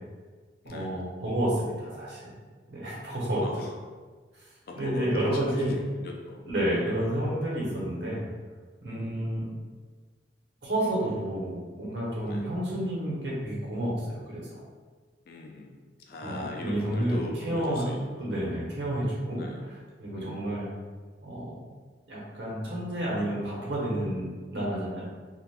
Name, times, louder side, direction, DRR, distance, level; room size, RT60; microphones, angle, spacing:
voice 1, 0.6-2.3 2.7-3.7 4.3-4.5 4.7-5.8 6.5-8.2 8.8-9.5 10.6-14.6 16.2-17.8 18.2-19.5 20.0-20.7 21.2-21.6 22.1-25.0, right 1 dB, 75° right, -5 dB, 1.0 m, -30 dB
voice 2, 4.7-7.0 8.9-9.3 12.2-12.5 15.3-18.3 19.4-19.7 20.1-20.5, left 2 dB, 55° left, 1 dB, 0.4 m, -41 dB
3.3 x 2.4 x 2.4 m, 1.4 s
head